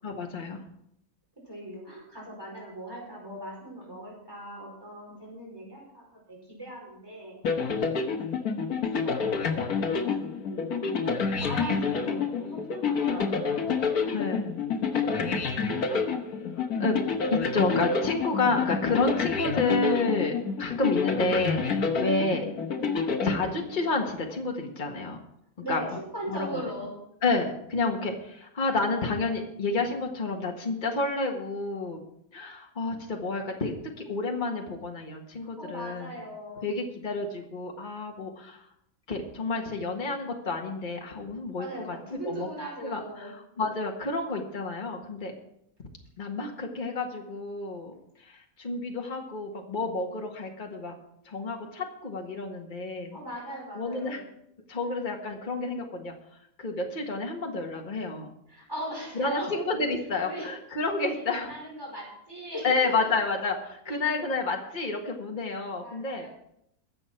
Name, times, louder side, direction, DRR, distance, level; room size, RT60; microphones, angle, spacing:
voice 1, 0.0-0.6 14.1-14.5 16.8-17.0 17.3-22.5 23.2-25.2 25.7-25.8 26.3-26.6 27.2-32.0 32.3-36.1 36.6-38.7 39.1-42.5 42.8-45.3 46.2-47.9 48.2-50.9 51.3-53.2 53.8-54.2 54.7-56.1 56.6-58.3 59.2-61.5 62.6-66.3, left 3 dB, 35° left, 1 dB, 1.8 m, -30 dB
voice 2, 1.4-7.4 9.0-10.0 10.5-13.8 15.0-16.0 25.6-26.9 35.4-36.7 41.6-43.3 53.1-54.2 58.5-59.5 60.2-60.5 61.0-63.1 63.9-64.0 65.8-66.3, right 1 dB, 15° right, -3 dB, 5.4 m, -39 dB
sound 1, 7.4-24.0, left 5 dB, 85° left, 1.8 m, -28 dB
21.5 x 7.7 x 4.5 m, 0.75 s
omnidirectional pair, 1.5 m